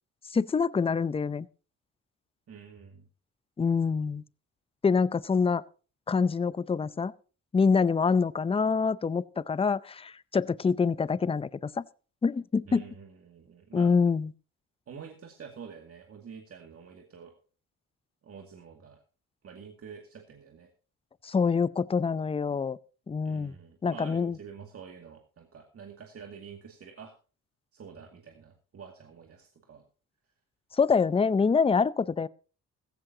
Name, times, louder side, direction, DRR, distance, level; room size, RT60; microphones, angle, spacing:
voice 1, 0.3-1.5 3.6-4.2 4.8-5.6 6.1-7.1 7.5-11.8 12.2-12.8 13.7-14.3 21.2-22.8 23.1-23.5 23.8-24.4 30.8-32.3, left 5 dB, 20° left, 0.5 m, -26 dB
voice 2, 2.5-3.1 12.7-13.9 14.9-17.3 18.2-19.0 19.4-20.7 23.2-27.1 27.7-29.8, right 6 dB, 50° right, 2.2 m, -47 dB
15.0 x 15.0 x 2.8 m
cardioid pair, 90°, 30 cm